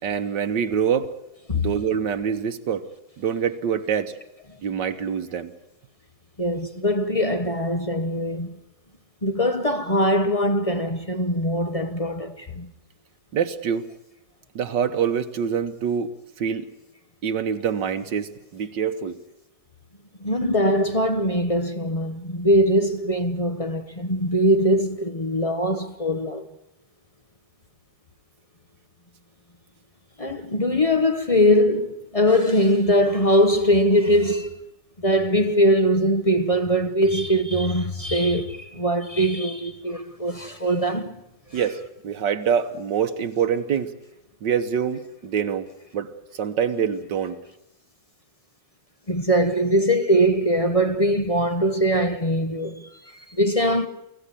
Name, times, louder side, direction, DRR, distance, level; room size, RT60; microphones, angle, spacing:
voice 1, 0.0-1.1 1.5-2.9 3.2-4.1 4.6-5.5 13.3-13.9 14.6-16.1 16.4-16.7 17.2-19.2 41.5-43.9 44.4-45.7 45.9-47.4, right 7 dB, 80° right, 1.7 m, -25 dB
voice 2, 6.4-8.5 9.2-12.7 20.2-26.5 30.2-34.6 35.0-41.1 41.5-41.6 49.1-53.9, equal, 25° left, 0.9 m, -21 dB
24.0 x 16.0 x 10.0 m
omnidirectional pair, 1.9 m